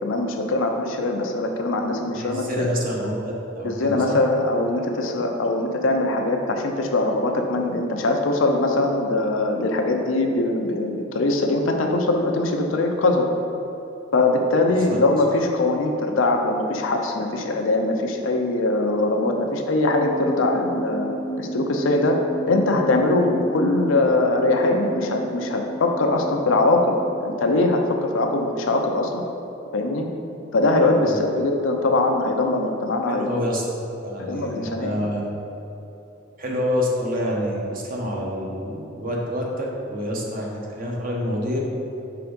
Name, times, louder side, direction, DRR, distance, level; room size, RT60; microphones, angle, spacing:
voice 1, 0.0-2.7 3.6-13.3 14.1-21.1 21.4-22.2 22.5-26.9 27.2-29.2 29.7-30.1 30.5-33.5 34.2-35.0, left 2 dB, 85° left, 3 dB, 0.6 m, -22 dB
voice 2, 2.1-4.2 14.7-15.0 31.0-31.2 33.1-33.6 34.0-35.2 36.4-41.6, equal, 45° right, -2 dB, 0.9 m, -27 dB
sound 1, 20.0-27.4, right 1 dB, 20° left, 0.4 m, -33 dB
5.8 x 3.5 x 5.1 m, 2.9 s
head